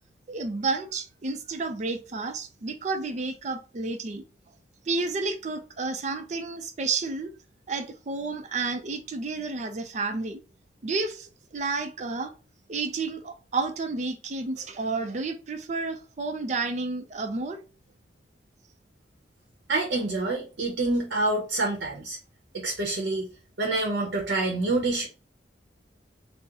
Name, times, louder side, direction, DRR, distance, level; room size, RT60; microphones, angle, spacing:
voice 1, 0.3-4.2 4.9-7.3 7.7-10.4 10.8-12.3 12.7-17.6, right 3 dB, 40° right, 0.4 m, -31 dB
voice 2, 19.7-22.2 22.5-23.3 23.6-25.1, right 2 dB, 85° right, 0.8 m, -27 dB
3.7 x 2.0 x 2.9 m
head